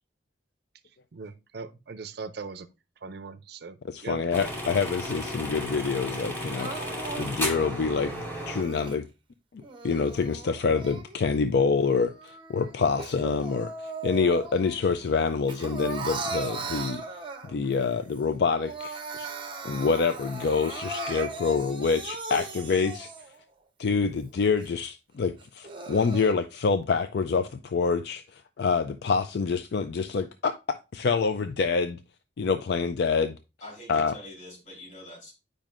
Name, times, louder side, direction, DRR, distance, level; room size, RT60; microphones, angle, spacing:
voice 1, 1.1-2.7 3.0-4.2, right 4 dB, 60° right, 0.5 m, -39 dB
voice 2, 3.8-9.1 9.8-17.0 17.5-19.3 19.6-23.1 23.8-32.0 32.4-33.4 33.9-34.1, left 5 dB, 60° left, 0.4 m, -26 dB
sound 1, 4.3-8.6, equal, 10° left, 2.0 m, -34 dB
Crying sobbing, 6.5-9.0 9.6-11.4 11.8-14.8 15.1-17.7 18.2-18.3 18.5-23.4 23.9-24.0 24.6-24.7 25.4-26.3, right 3 dB, 25° right, 0.8 m, -38 dB
voice 3, 33.6-35.3, left 1 dB, 40° left, 3.4 m, -45 dB
8.9 x 5.2 x 2.5 m
head